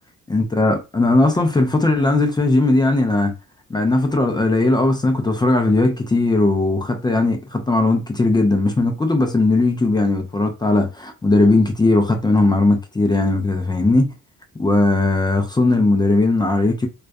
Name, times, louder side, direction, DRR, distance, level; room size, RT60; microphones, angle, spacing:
voice 1, 0.3-3.3 3.7-14.1 14.6-16.9, left 2 dB, 15° left, 0.4 m, -18 dB
2.3 x 2.1 x 2.5 m
cardioid pair, 90°, 30 cm